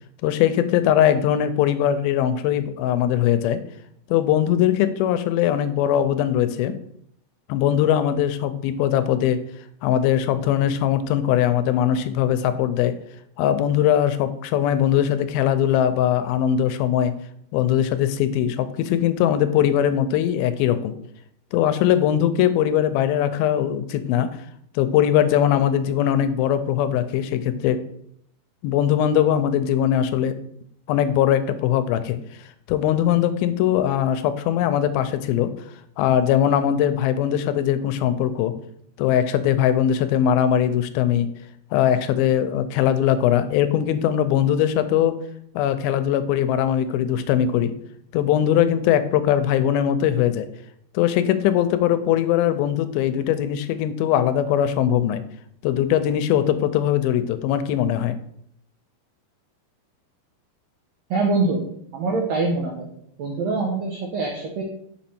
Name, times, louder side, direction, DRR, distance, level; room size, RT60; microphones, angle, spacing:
voice 1, 0.2-3.6 4.1-6.8 7.5-9.4 9.8-13.0 13.4-17.1 17.5-20.9 21.5-24.3 24.8-27.8 28.6-30.3 30.9-32.2 32.7-35.5 36.0-38.5 39.0-41.3 41.7-45.2 45.6-47.7 48.1-50.5 50.9-55.2 55.6-58.2, left 10 dB, 90° left, 11 dB, 2.4 m, -20 dB
voice 2, 61.1-61.6 61.9-62.9 63.2-64.6, right 3 dB, 80° right, 0 dB, 1.5 m, -24 dB
5.7 x 5.2 x 4.2 m, 0.70 s
omnidirectional pair, 4.2 m